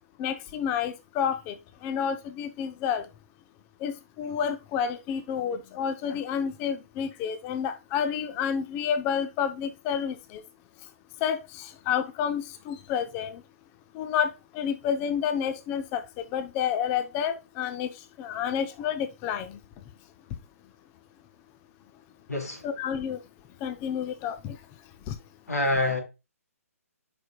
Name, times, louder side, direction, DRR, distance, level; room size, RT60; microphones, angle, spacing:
voice 1, 0.2-1.5 1.8-3.1 3.8-10.4 11.2-13.4 13.9-17.9 18.2-19.6 22.6-23.2 23.6-24.6 25.1-25.2, left 8 dB, 20° left, 0.5 m, -30 dB
voice 2, 22.3-22.6 25.5-26.0, left 1 dB, 90° left, 2.7 m, -26 dB
5.1 x 4.2 x 5.1 m
hypercardioid pair, 145°, 8 cm